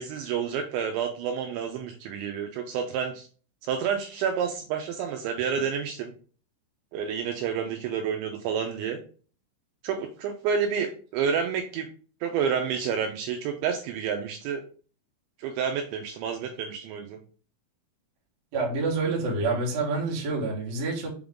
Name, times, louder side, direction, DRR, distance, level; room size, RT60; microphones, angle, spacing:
voice 1, 0.0-3.3 3.6-6.1 6.9-9.0 9.8-11.9 12.2-14.6 15.4-17.2, right 7 dB, 80° right, 3 dB, 2.8 m, -29 dB
voice 2, 18.5-21.1, right 3 dB, 55° right, -2 dB, 2.0 m, -27 dB
7.8 x 3.6 x 3.7 m, 0.40 s
omnidirectional pair, 5.6 m